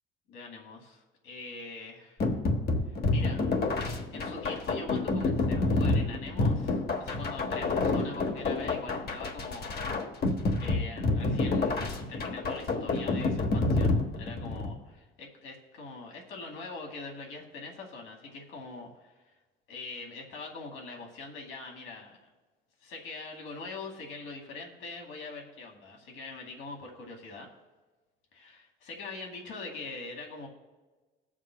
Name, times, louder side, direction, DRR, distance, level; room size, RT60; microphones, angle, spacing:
voice 1, 0.3-2.3 2.9-3.4 3.8-9.8 10.6-19.2 19.7-22.2 22.8-27.5 28.3-30.5, left 3 dB, 75° left, 1 dB, 2.2 m, -43 dB
sound 1, 2.2-14.8, left 3 dB, 50° left, 1.3 m, -28 dB
20.5 x 7.3 x 2.3 m, 1.3 s
supercardioid pair, 75°, 21 cm